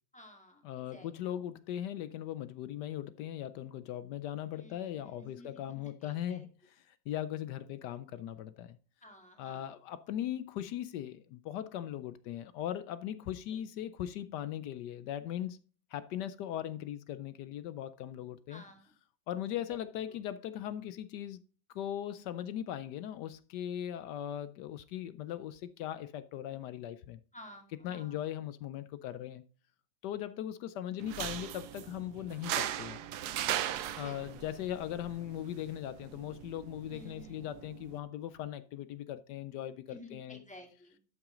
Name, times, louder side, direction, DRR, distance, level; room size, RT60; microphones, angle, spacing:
voice 1, 0.1-0.6 0.9-1.1 4.5-6.5 9.0-9.7 13.5-13.6 18.5-18.9 20.1-20.2 27.3-28.2 33.9-34.4 34.8-35.0 36.9-37.5 39.9-41.0, left 1 dB, 5° left, 1.9 m, -53 dB
voice 2, 0.6-8.8 9.4-15.6 15.9-18.6 19.3-21.4 21.7-27.2 27.8-29.4 30.0-33.0 33.9-40.4, left 11 dB, 75° left, 1.1 m, -39 dB
sound 1, 31.0-38.0, right 11 dB, 65° right, 1.1 m, -39 dB
12.0 x 5.9 x 3.7 m
omnidirectional pair, 2.0 m